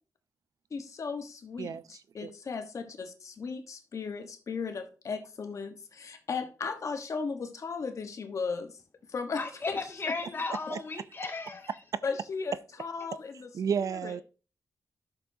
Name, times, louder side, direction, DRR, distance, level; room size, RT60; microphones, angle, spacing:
voice 1, 0.7-8.8 9.1-9.8 10.1-10.2 12.0-13.5 13.8-14.1, left 5 dB, 55° left, 1.1 m, -36 dB
voice 2, 9.3-11.8, left 3 dB, 35° left, 1.9 m, -35 dB
voice 3, 13.5-14.2, right 7 dB, 60° right, 0.4 m, -31 dB
12.0 x 6.8 x 2.7 m
wide cardioid pair, 120°, 7 cm